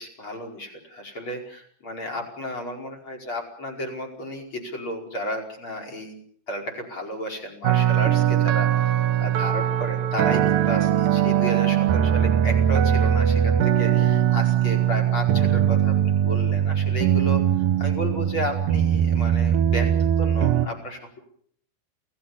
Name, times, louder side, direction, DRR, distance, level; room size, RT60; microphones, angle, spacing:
voice 1, 0.0-6.2 6.5-8.7 9.2-17.5 17.8-21.2, equal, 30° left, 6 dB, 5.6 m, -33 dB
sound 1, 7.6-20.7, right 10 dB, 65° right, 2.5 m, -21 dB
28.5 x 18.5 x 7.1 m, 0.64 s
omnidirectional pair, 4.8 m